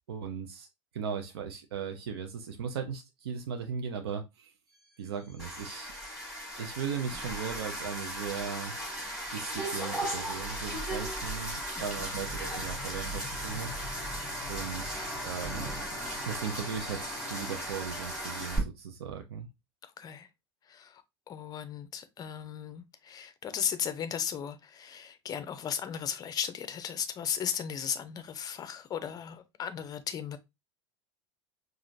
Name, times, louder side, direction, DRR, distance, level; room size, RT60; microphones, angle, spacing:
voice 1, 0.1-0.7 0.9-4.5 5.0-5.9 6.6-8.7 9.0-13.8 14.5-15.7 16.3-19.5, right 7 dB, 65° right, 0.7 m, -37 dB
sound 1, 4.7-17.8, equal, 35° right, 2.4 m, -49 dB
sound 2, 5.4-18.6, equal, 5° right, 2.2 m, -37 dB
voice 2, 19.8-20.3 20.7-30.4, left 8 dB, 25° left, 0.6 m, -36 dB
4.9 x 2.5 x 2.6 m
figure-of-eight pair, 80°, 14 cm